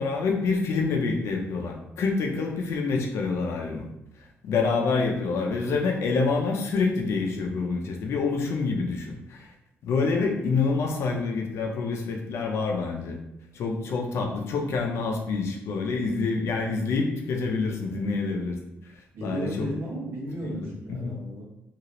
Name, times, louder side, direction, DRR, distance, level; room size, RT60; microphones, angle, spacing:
voice 1, 0.0-3.9 4.4-9.5 9.8-13.2 13.5-18.6 19.2-19.7 20.4-21.1, left 4 dB, 80° left, 2 dB, 0.6 m, -27 dB
voice 2, 4.9-5.6 19.1-21.4, right 1 dB, 75° right, -4 dB, 1.2 m, -35 dB
2.9 x 2.8 x 2.9 m, 0.86 s
cardioid pair, 140°, 5 cm